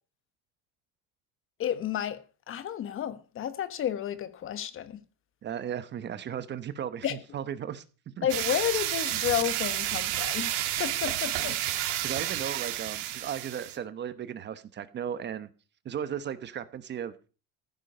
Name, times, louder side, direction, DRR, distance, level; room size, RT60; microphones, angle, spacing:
voice 1, 1.6-2.2 2.5-4.9 7.0-7.1 8.2-10.5 10.8-11.6, left 10 dB, 40° left, 1.2 m, -31 dB
voice 2, 5.4-7.8 8.2-8.3 11.8-15.5 15.8-17.1, right 9 dB, 30° right, 1.0 m, -36 dB
sound 1, 8.3-13.8, right 14 dB, 80° right, 2.5 m, -31 dB
15.0 x 9.0 x 5.5 m
cardioid pair, 145°, 34 cm